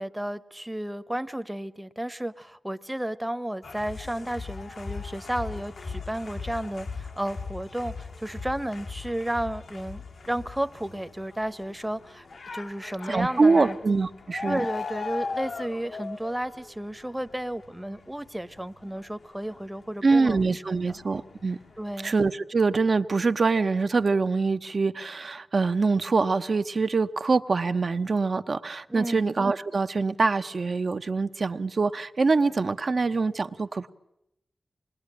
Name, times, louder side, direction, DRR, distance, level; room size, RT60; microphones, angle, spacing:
voice 1, 0.0-12.3 12.5-13.8 14.5-20.4 20.7-21.0 21.8-22.1 28.9-29.2, right 1 dB, 10° right, 0.9 m, -33 dB
sound 1, 3.6-20.4 20.7-22.1, left 4 dB, 75° left, 1.1 m, -39 dB
voice 2, 13.1-14.6 20.0-21.6 22.0-33.9, right 4 dB, 55° right, 1.0 m, -24 dB
26.5 x 21.0 x 10.0 m
wide cardioid pair, 90°, 0 cm